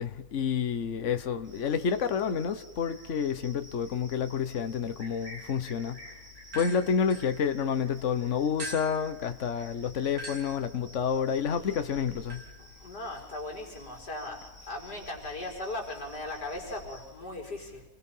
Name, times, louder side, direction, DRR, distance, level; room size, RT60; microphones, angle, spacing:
voice 1, 0.0-6.0 6.5-12.4, left 7 dB, 50° left, 10 dB, 1.4 m, -29 dB
Cricket, 1.4-17.1, equal, 60° right, 6.9 m, -53 dB
sound 1, 6.4-7.9 8.6-16.9, right 1 dB, 75° right, 4.6 m, -47 dB
voice 2, 12.6-17.8, left 2 dB, 70° left, 1 dB, 5.0 m, -38 dB
30.0 x 21.5 x 5.6 m, 0.97 s
omnidirectional pair, 1.8 m